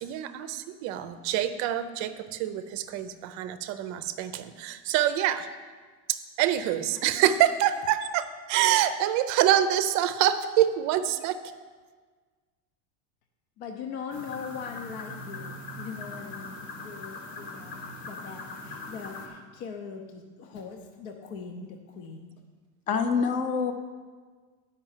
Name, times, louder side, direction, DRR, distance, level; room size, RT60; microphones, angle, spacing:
voice 1, 0.0-5.5 6.1-11.4, right 11 dB, 45° right, 11 dB, 0.5 m, -26 dB
voice 2, 13.6-22.3, left 6 dB, 60° left, 4 dB, 0.8 m, -41 dB
sound 1, 14.1-19.3, left 2 dB, 85° left, 2.1 m, -41 dB
voice 3, 22.9-23.7, left 5 dB, 20° left, 8 dB, 0.4 m, -25 dB
8.8 x 5.4 x 7.2 m, 1.5 s
cardioid pair, 165°, 41 cm